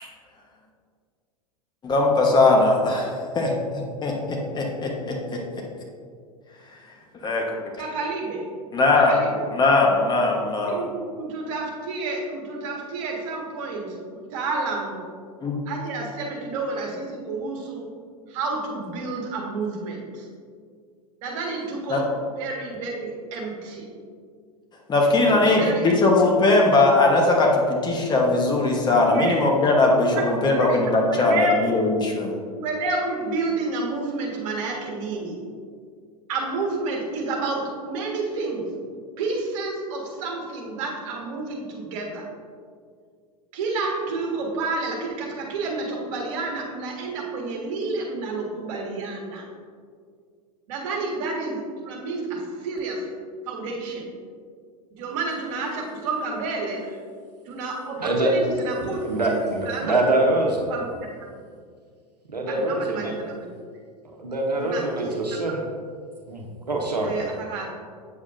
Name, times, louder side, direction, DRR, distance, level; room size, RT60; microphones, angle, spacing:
voice 1, 1.8-3.5 4.0-5.4 7.2-7.5 8.7-9.2 9.5-10.8 15.4-15.6 21.9-22.0 24.9-32.4, left 2 dB, 20° left, 0 dB, 1.2 m, -20 dB
voice 2, 7.8-8.4 9.1-9.5 10.7-15.0 15.7-17.9 18.3-20.3 21.2-22.0 22.4-23.9 25.4-26.0 29.1-29.4 29.8-30.2 30.6-31.6 32.6-35.4 36.3-38.7 39.2-42.3 43.5-49.4 50.7-53.0 53.5-54.1 54.9-56.8 57.5-59.4 59.6-59.8 60.7-61.3 62.5-63.5 64.6-65.4 67.0-67.7, right 3 dB, 55° right, -1 dB, 1.8 m, -30 dB
voice 3, 58.0-58.5 58.8-60.7 62.3-63.1 64.2-65.6 66.3-67.2, right 2 dB, 90° right, 0 dB, 1.1 m, -24 dB
8.4 x 7.3 x 2.6 m, 2.1 s
figure-of-eight pair, 95°, 20 cm